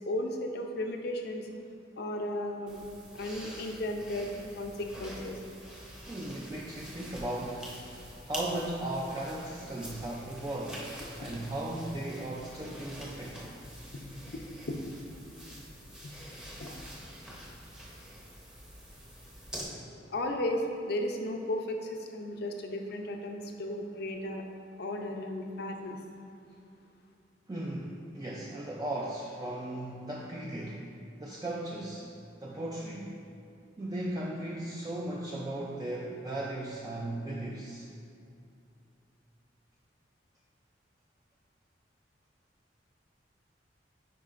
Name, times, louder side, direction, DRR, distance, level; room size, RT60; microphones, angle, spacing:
voice 1, 0.1-1.5 2.0-2.8 3.1-5.4 11.2-11.3 13.9-14.4 14.7-14.8 16.6-16.8 20.1-24.4 24.8-26.0, left 1 dB, 60° left, 3 dB, 0.6 m, -35 dB
sound 1, 2.7-19.6, equal, 5° right, 0.8 m, -46 dB
voice 2, 6.1-7.8 8.2-10.9 11.2-13.5 27.5-30.9 31.2-32.1 32.4-33.1 33.8-37.9, right 1 dB, 20° right, -3 dB, 0.4 m, -37 dB
9.1 x 4.5 x 2.5 m, 2.6 s
head